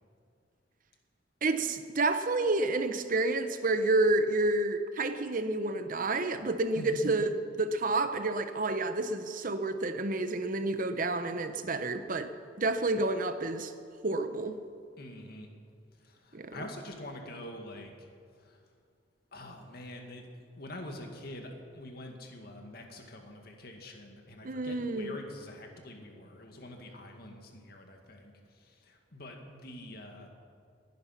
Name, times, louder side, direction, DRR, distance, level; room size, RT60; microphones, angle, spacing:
voice 1, 1.4-7.3 7.6-12.3 12.6-13.7 14.0-14.6 16.3-16.7 24.4-25.2, right 2 dB, 45° right, 9 dB, 0.9 m, -29 dB
voice 2, 6.8-7.1 15.0-15.5 16.0-17.9 18.4-18.6 19.3-20.2 20.6-30.3, left 1 dB, 55° left, 3 dB, 2.0 m, -45 dB
20.0 x 10.5 x 5.9 m, 2.2 s
head